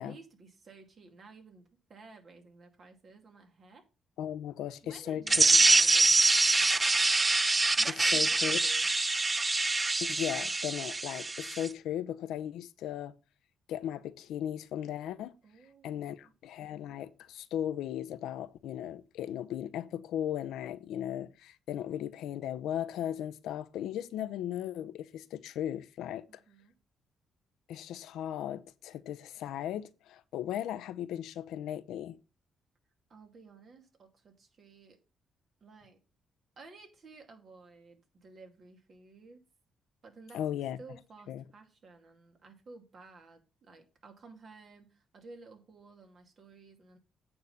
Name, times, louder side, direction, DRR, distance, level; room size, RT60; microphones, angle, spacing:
voice 1, 0.0-3.8 4.8-6.4 7.8-8.9 15.4-16.3 26.3-26.8 33.1-35.0 35.6-36.0 36.6-39.4 40.0-40.4 40.8-47.0, right 3 dB, 50° right, 2.4 m, -54 dB
voice 2, 4.2-5.5 8.1-8.6 10.0-13.2 13.7-15.3 15.8-26.3 27.7-32.2 40.3-40.8 41.3-41.5, left 11 dB, 85° left, 0.7 m, -37 dB
sound 1, 5.3-11.7, right 3 dB, 20° right, 0.3 m, -25 dB
8.7 x 3.9 x 7.1 m
cardioid pair, 90°, 0 cm